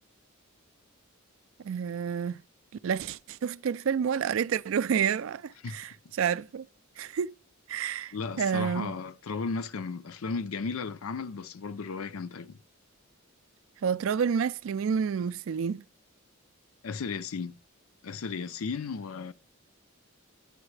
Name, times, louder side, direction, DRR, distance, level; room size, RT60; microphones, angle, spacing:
voice 1, 1.6-2.4 2.8-6.7 7.0-7.3 7.7-9.0 13.8-15.8, right 7 dB, 65° right, 0.3 m, -29 dB
voice 2, 8.1-12.6 16.8-17.5 18.0-19.3, left 4 dB, 80° left, 0.5 m, -35 dB
9.8 x 9.5 x 3.2 m
head